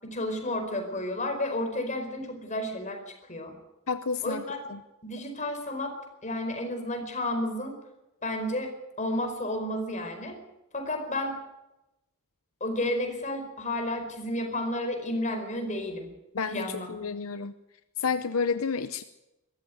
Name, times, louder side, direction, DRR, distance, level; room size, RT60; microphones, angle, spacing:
voice 1, 0.0-3.0 3.3-3.5 4.2-4.6 5.0-5.9 6.2-7.8 8.2-8.7 9.0-10.4 10.7-11.3 12.6-16.1 16.5-16.9, left 1 dB, 35° left, 5 dB, 4.8 m, -31 dB
voice 2, 3.9-4.4 4.7-4.8 16.3-17.5 18.0-19.0, left 5 dB, 75° left, 11 dB, 0.7 m, -30 dB
22.5 x 14.0 x 9.4 m, 0.97 s
head